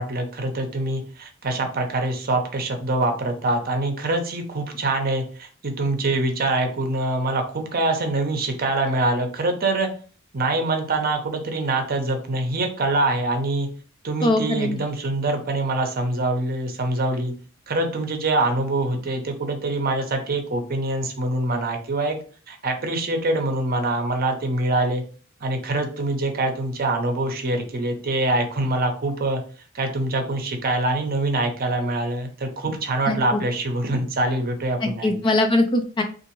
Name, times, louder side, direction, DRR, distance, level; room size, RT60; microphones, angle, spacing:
voice 1, 0.0-9.9 10.3-13.7 14.0-17.3 17.7-22.2 22.5-25.0 25.4-29.4 29.7-35.2, right 2 dB, 45° right, 5 dB, 0.7 m, -24 dB
voice 2, 14.2-14.8 33.1-33.4 34.8-36.0, left 1 dB, 25° left, 5 dB, 0.4 m, -21 dB
3.7 x 2.5 x 2.9 m, 0.41 s
head